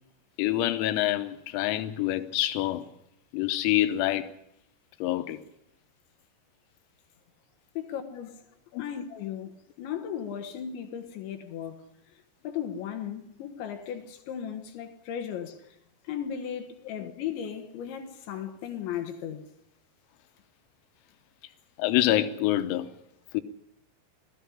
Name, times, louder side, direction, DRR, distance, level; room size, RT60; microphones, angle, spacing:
voice 1, 0.4-2.9 3.3-4.3 5.0-5.4 8.7-8.8 21.8-22.9 23.3-23.4, left 14 dB, 90° left, 3.7 m, -26 dB
voice 2, 7.7-8.4 8.8-11.9 12.4-15.8 16.0-19.4, left 9 dB, 70° left, 3.3 m, -36 dB
19.5 x 14.5 x 10.0 m
omnidirectional pair, 6.0 m